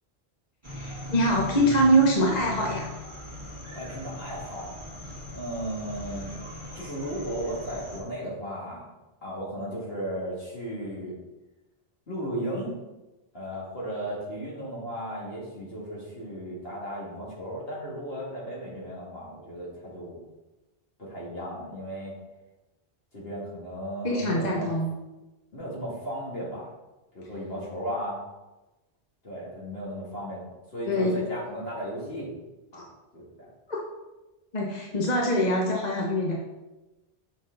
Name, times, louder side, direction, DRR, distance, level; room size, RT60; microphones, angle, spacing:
sound 1, 0.6-8.0, left 1 dB, 50° right, 2.1 m, -40 dB
voice 1, 0.7-2.9 24.0-24.9 30.9-31.2 33.7-33.8 34.5-36.3, equal, 45° left, -2 dB, 1.0 m, -24 dB
voice 2, 3.7-4.7 5.3-6.4 6.7-8.8 9.2-11.1 12.1-12.7 13.3-20.2 21.0-22.1 23.1-24.7 25.5-26.7 27.1-28.2 29.2-30.4 30.7-32.3 32.7-33.5, equal, 65° left, -6 dB, 2.5 m, -35 dB
6.2 x 5.8 x 3.9 m, 1.1 s
omnidirectional pair, 1.1 m